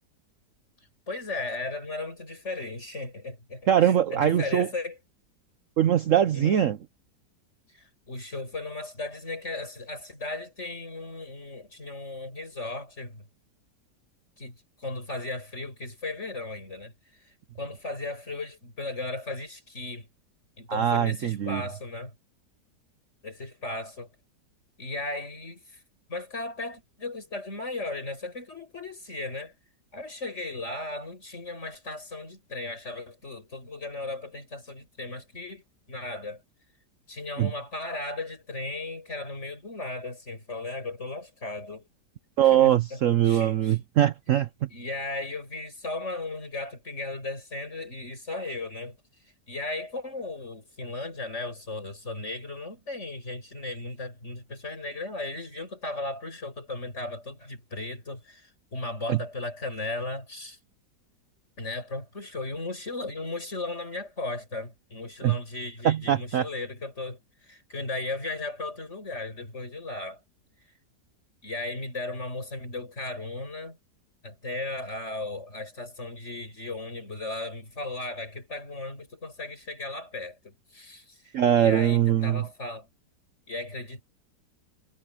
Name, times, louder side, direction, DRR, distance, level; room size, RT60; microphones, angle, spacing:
voice 1, 1.1-5.0 6.3-6.6 7.7-13.2 14.4-16.9 17.2-20.1 20.6-22.1 23.2-24.1 24.8-25.8 26.1-29.5 29.9-36.4 37.1-41.9 42.4-43.0 43.2-43.8 44.7-49.0 49.5-60.6 61.6-70.2 71.4-73.8 74.2-82.9 83.5-84.0, left 2 dB, 40° left, 6.3 m, -36 dB
voice 2, 3.7-4.7 5.8-6.8 20.7-21.6 37.4-37.5 42.4-44.5 59.1-59.2 65.2-65.4 65.8-66.5 81.3-82.4, right 10 dB, 60° right, 0.9 m, -22 dB
omnidirectional pair, 1.9 m